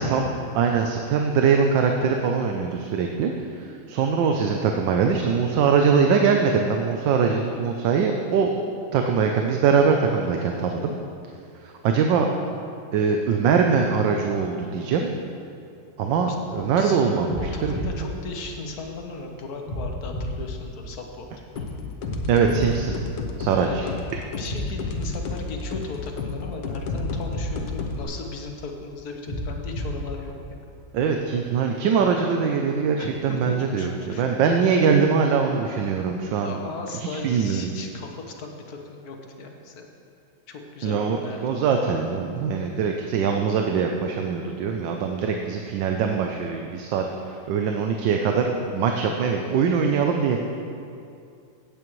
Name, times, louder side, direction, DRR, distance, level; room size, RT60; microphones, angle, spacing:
voice 1, 0.0-3.3 3.6-8.6 8.9-10.9 11.8-12.3 12.9-15.1 16.0-17.7 22.3-23.0 23.4-23.9 30.9-36.6 37.0-37.7 40.8-50.4, right 6 dB, 85° right, 3 dB, 1.4 m, -22 dB
voice 2, 16.3-21.3 23.6-23.9 24.4-30.6 33.0-34.2 34.5-34.7 36.4-39.8 40.5-41.4, left 3 dB, 60° left, 3 dB, 1.4 m, -37 dB
sound 1, 16.3-16.7 17.3-19.1 19.7-21.5 22.1-23.9 24.5-26.3 26.9-28.7 29.3-31.1, left 1 dB, 15° left, 2.2 m, -33 dB
sound 2, 21.6-28.0, left 4 dB, 85° left, 1.5 m, -33 dB
16.0 x 8.7 x 3.1 m, 2.5 s
omnidirectional pair, 2.0 m